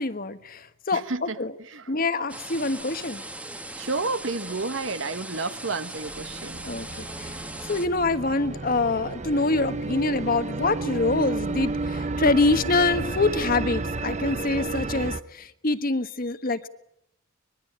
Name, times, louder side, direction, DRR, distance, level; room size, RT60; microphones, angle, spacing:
voice 1, 0.0-1.5 1.9-3.2 6.6-7.4 7.7-16.7, left 2 dB, 45° left, 1.4 m, -25 dB
voice 2, 0.9-1.4 1.7-1.9 3.8-6.7, right 3 dB, 65° right, 1.3 m, -31 dB
sound 1, 2.3-7.9, right 1 dB, 5° right, 1.4 m, -39 dB
sound 2, 6.1-15.2, right 3 dB, 35° right, 0.9 m, -32 dB
24.5 x 21.5 x 8.8 m
head